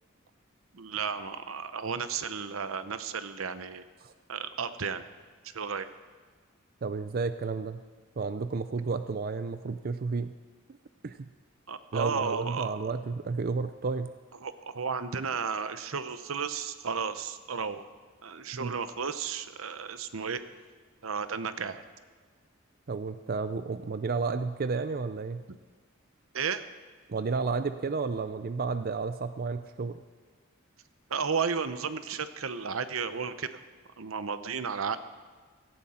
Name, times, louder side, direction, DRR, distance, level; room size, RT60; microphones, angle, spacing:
voice 1, 0.7-3.8 4.3-5.0 5.4-5.9 11.7-12.9 14.4-17.9 18.2-20.4 21.0-21.8 26.3-26.6 31.1-33.5 34.0-35.0, right 6 dB, 85° right, 11 dB, 0.8 m, -33 dB
voice 2, 6.8-7.8 8.2-10.3 11.0-11.3 11.9-14.1 18.5-18.8 22.9-25.4 27.1-30.0, right 4 dB, 45° right, 11 dB, 0.5 m, -32 dB
17.5 x 15.0 x 4.3 m, 1.5 s
head